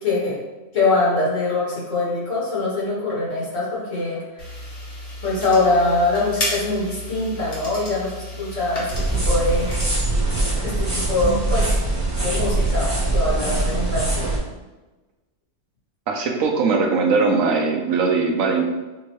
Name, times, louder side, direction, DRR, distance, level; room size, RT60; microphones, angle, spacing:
voice 1, 0.0-0.4 0.7-4.4 5.2-9.7 10.6-11.8 12.2-14.3, left 2 dB, 60° left, -6 dB, 1.8 m, -23 dB
sound 1, 4.4-9.8, left 1 dB, 45° left, 1.4 m, -32 dB
sound 2, 8.9-14.4, right 2 dB, 15° right, 1.1 m, -22 dB
voice 2, 16.1-18.6, right 4 dB, 75° right, 2 dB, 1.1 m, -20 dB
6.2 x 2.7 x 3.0 m, 1.1 s
omnidirectional pair, 1.5 m